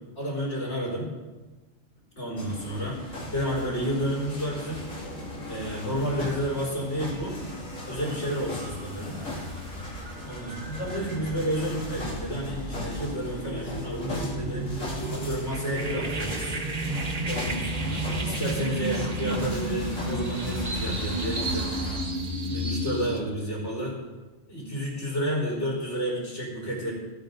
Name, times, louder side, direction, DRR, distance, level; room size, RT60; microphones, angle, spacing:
voice 1, 0.2-1.1 2.2-4.9 5.5-7.4 7.8-9.3 10.2-14.8 15.1-16.6 17.2-21.7 22.5-24.0 24.5-26.9, equal, 60° left, -5 dB, 4.1 m, -31 dB
sound 1, 2.4-22.0, left 1 dB, 90° left, 2.8 m, -37 dB
sound 2, 7.1-7.4 7.7-23.2, right 1 dB, 35° right, 1.1 m, -33 dB
15.0 x 8.5 x 3.9 m, 1.2 s
omnidirectional pair, 1.3 m